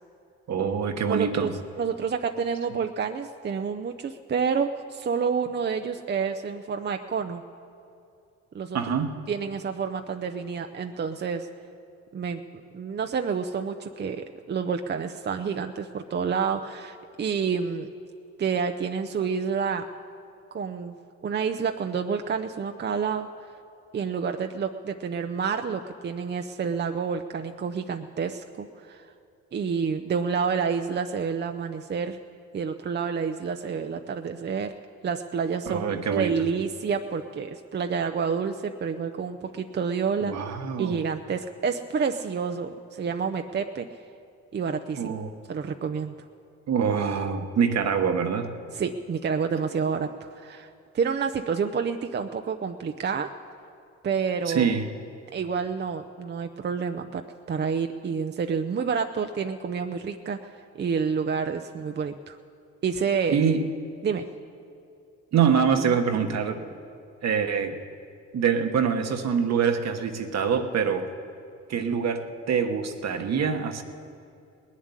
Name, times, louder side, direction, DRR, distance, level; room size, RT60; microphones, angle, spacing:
voice 1, 0.5-1.6 8.7-9.1 35.7-36.3 40.2-41.0 45.0-45.3 46.7-48.5 54.5-54.9 63.3-63.7 65.3-66.6 67.2-67.8 68.3-71.1 71.7-73.8, right 6 dB, 60° right, 6 dB, 1.3 m, -25 dB
voice 2, 1.1-1.5 1.8-7.4 8.5-8.8 9.3-11.5 12.1-17.9 18.4-19.9 20.5-21.0 21.2-23.3 23.9-29.1 29.5-32.2 32.5-34.7 35.0-40.3 40.8-43.9 44.5-45.1 45.5-46.1 48.7-53.3 54.0-54.7 55.3-57.2 57.5-62.4 62.8-63.4 64.0-64.3, right 6 dB, 35° right, 6 dB, 0.6 m, -29 dB
19.0 x 7.4 x 9.8 m, 2.6 s
cardioid pair, 90°, 30 cm